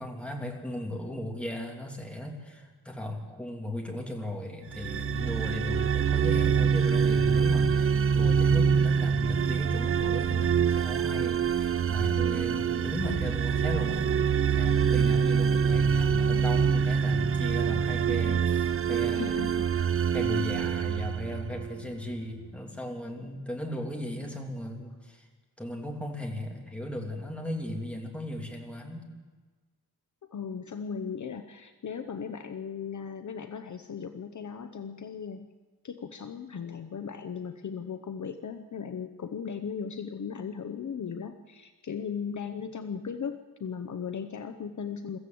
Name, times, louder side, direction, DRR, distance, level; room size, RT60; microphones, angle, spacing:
voice 1, 0.0-14.1 14.5-19.3 20.1-25.3 25.6-29.1, left 1 dB, 5° left, 0 dB, 2.8 m, -36 dB
sound 1, 4.7-21.8, right 7 dB, 35° right, 0.5 m, -25 dB
voice 2, 19.2-19.7 30.3-35.5 35.8-45.2, left 6 dB, 50° left, 8 dB, 0.8 m, -37 dB
23.0 x 14.5 x 7.8 m, 1.4 s
wide cardioid pair, 160°, 39 cm